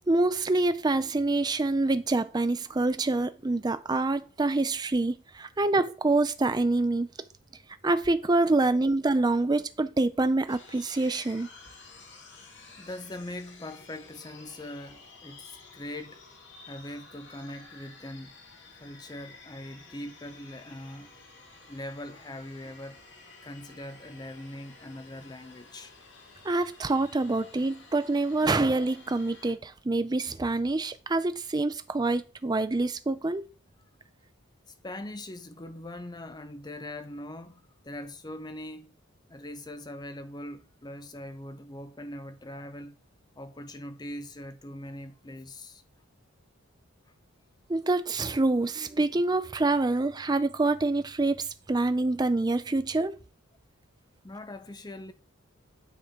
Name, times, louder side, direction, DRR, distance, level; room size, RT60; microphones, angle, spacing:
voice 1, 0.1-7.1 7.8-11.5 26.4-33.4 47.7-53.2, right 2 dB, 20° right, 0.4 m, -26 dB
sound 1, 10.5-29.5, left 3 dB, 55° left, 1.7 m, -52 dB
voice 2, 12.8-16.2 16.7-18.4 18.7-21.1 21.7-23.0 23.4-25.9 34.8-38.9 39.3-43.0 43.4-45.8 54.2-55.1, left 1 dB, 20° left, 0.7 m, -41 dB
9.1 x 3.7 x 4.5 m
head